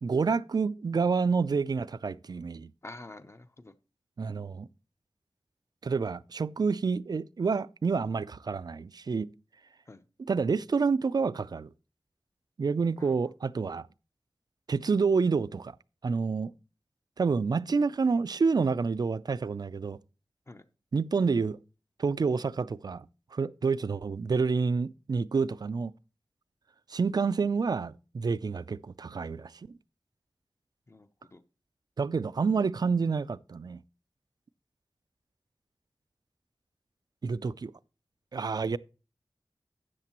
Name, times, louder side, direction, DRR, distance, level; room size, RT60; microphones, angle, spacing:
voice 1, 0.0-2.7 4.2-4.7 5.8-9.3 10.2-11.7 12.6-13.9 14.7-15.8 16.0-16.5 17.2-20.0 20.9-21.6 22.0-23.1 23.3-25.9 26.9-29.5 32.0-33.8 37.2-37.7 38.3-38.8, right 5 dB, 55° right, 0.3 m, -28 dB
voice 2, 2.8-3.7 9.9-10.0 13.0-13.3 20.5-20.6 30.9-31.4, left 2 dB, 35° left, 0.7 m, -48 dB
12.5 x 8.2 x 3.0 m
wide cardioid pair, 85°, 8 cm